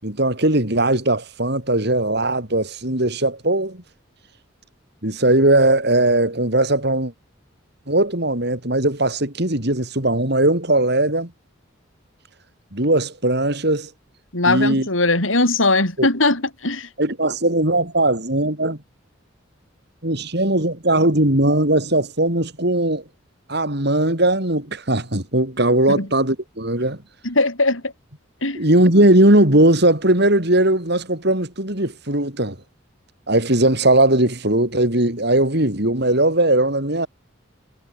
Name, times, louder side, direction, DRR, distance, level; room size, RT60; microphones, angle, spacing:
voice 1, 0.0-3.8 5.0-7.1 7.9-11.3 12.7-13.9 14.5-14.9 16.0-16.1 17.0-18.8 20.0-23.0 23.5-27.0 28.5-32.6 33.3-37.1, right 1 dB, 55° right, 4.9 m, -19 dB
voice 2, 14.3-16.9 25.9-26.1 27.2-27.8 28.4-28.6, left 2 dB, 80° left, 7.5 m, -19 dB
head